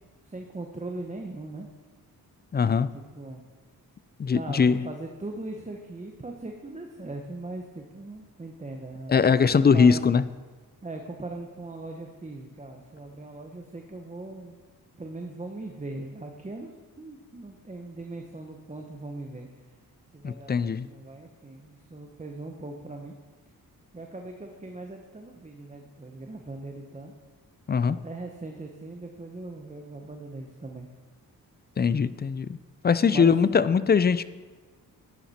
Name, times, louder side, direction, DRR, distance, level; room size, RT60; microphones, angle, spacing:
voice 1, 0.2-1.7 2.6-3.4 4.3-10.1 10.8-14.6 15.0-19.5 20.1-23.1 23.9-27.1 27.9-30.9 33.1-33.6, right 2 dB, 20° right, 3 dB, 1.0 m, -40 dB
voice 2, 2.5-2.9 4.2-4.9 9.1-10.2 20.2-20.9 27.7-28.0 31.8-32.6 32.8-34.2, left 6 dB, 30° left, 16 dB, 0.4 m, -21 dB
12.0 x 10.0 x 4.3 m, 1.3 s
cardioid pair, 80°, 36 cm